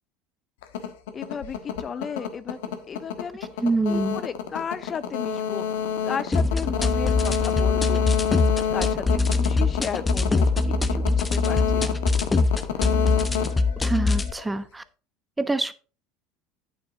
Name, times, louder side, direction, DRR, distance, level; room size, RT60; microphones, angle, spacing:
sound 1, 0.6-14.5, left 8 dB, 85° left, 1.2 m, -29 dB
voice 1, 1.1-2.6 2.9-3.6 3.9-5.6 6.0-8.0 8.7-10.5 10.9-12.0, left 6 dB, 35° left, 14 dB, 0.4 m, -34 dB
voice 2, 3.6-4.2 13.8-14.8 15.4-15.7, right 2 dB, 10° right, 13 dB, 0.8 m, -25 dB
sound 2, 6.3-14.3, left 3 dB, 20° left, 0.9 m, -23 dB
8.8 x 7.8 x 3.8 m, 0.35 s
supercardioid pair, 95°, 0 cm